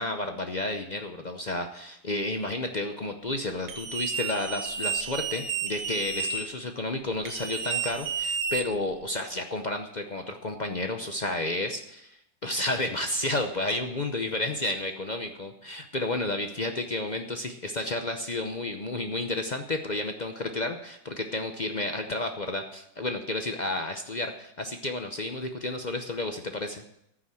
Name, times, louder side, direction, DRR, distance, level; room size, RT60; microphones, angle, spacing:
voice 1, 0.0-26.8, left 2 dB, 55° left, 5 dB, 0.4 m, -31 dB
sound 1, 3.7-6.4 7.2-9.0, right 5 dB, 90° right, 2.0 m, -31 dB
14.0 x 6.2 x 7.6 m, 0.80 s
omnidirectional pair, 2.0 m